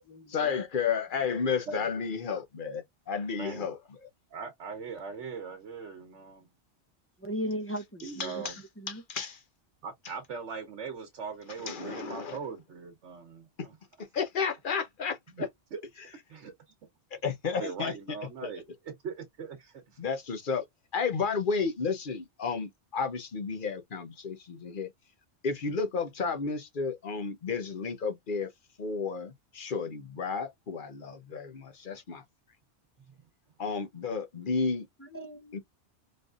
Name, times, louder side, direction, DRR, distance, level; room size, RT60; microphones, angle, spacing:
voice 1, 0.3-3.8 8.2-8.5 9.1-9.4 11.7-12.4 14.1-15.5 17.2-17.9 18.4-18.5 20.0-20.6 20.9-24.9 25.4-28.5 28.8-32.2 33.6-34.9 35.5-35.6, left 5 dB, 50° left, 0.9 m, -32 dB
voice 2, 3.3-3.7 4.3-6.5 8.0-8.6 9.8-13.8 15.4-15.8 16.3-16.7 17.4-20.0 33.1-33.2, right 5 dB, 85° right, 1.2 m, -40 dB
voice 3, 7.2-8.4 8.8-9.0 35.0-35.6, equal, 15° left, 0.5 m, -37 dB
4.1 x 3.3 x 2.4 m
omnidirectional pair, 1.2 m